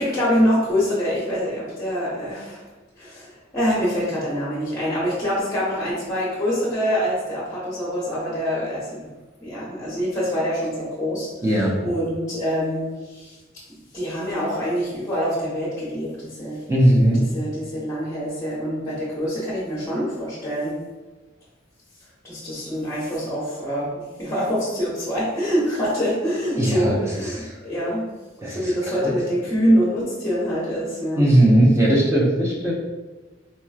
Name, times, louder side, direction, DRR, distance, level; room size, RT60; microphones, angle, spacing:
voice 1, 0.0-2.7 3.0-9.1 9.4-11.3 11.6-13.4 13.9-16.6 17.2-20.8 22.2-28.1 28.4-31.3, equal, 15° left, -9 dB, 1.0 m, -25 dB
voice 2, 11.4-11.7 16.7-17.2 26.6-27.5 28.4-28.7 29.0-29.2 31.2-32.7, right 1 dB, 15° right, -5 dB, 0.8 m, -18 dB
4.2 x 2.9 x 2.3 m, 1.2 s
head